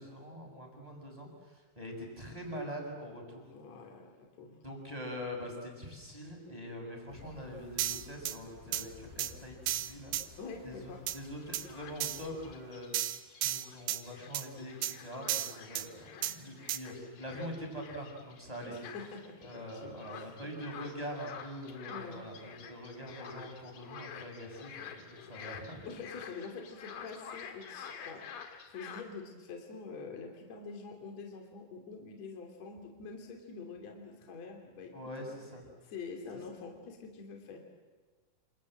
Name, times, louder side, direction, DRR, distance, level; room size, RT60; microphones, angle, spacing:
voice 1, 0.0-3.4 4.6-10.1 10.6-12.9 13.4-18.7 19.4-25.8 34.9-35.6, equal, 10° right, 0 dB, 6.4 m, -43 dB
voice 2, 3.5-4.6 10.4-11.0 18.7-20.5 21.9-22.2 25.9-28.3 28.7-34.9 35.3-35.4 35.8-37.6, left 4 dB, 45° left, 2 dB, 3.8 m, -46 dB
sound 1, 7.1-12.6, left 6 dB, 80° left, 4.1 m, -55 dB
sound 2, 7.8-8.4 8.7-8.8 9.2-9.3 9.7-10.2 11.1-11.2 11.5-11.6 12.0-12.2 12.9-14.0 14.3-14.5 14.8-14.9 15.3-15.9 16.2-16.3 16.7-16.8, right 13 dB, 75° right, 1.8 m, -33 dB
sound 3, 11.2-29.0, left 7 dB, 65° left, 3.6 m, -49 dB
28.0 x 27.5 x 7.7 m, 1.3 s
omnidirectional pair, 4.7 m